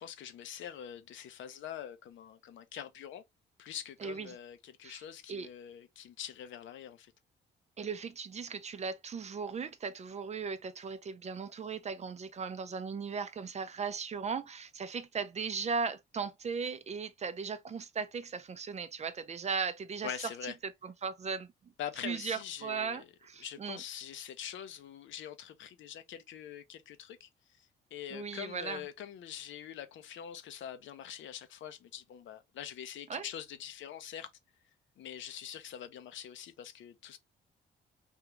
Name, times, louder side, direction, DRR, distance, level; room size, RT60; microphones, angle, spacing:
voice 1, 0.0-3.2 3.6-7.1 20.0-20.6 21.8-23.0 23.4-27.3 27.6-34.3 35.0-37.2, left 9 dB, 75° left, 0.7 m, -44 dB
voice 2, 7.8-20.1 20.6-21.5 22.0-23.8 28.1-28.8 33.1-33.2, right 5 dB, 35° right, 0.5 m, -37 dB
3.5 x 2.4 x 2.9 m
cardioid pair, 90°, 20 cm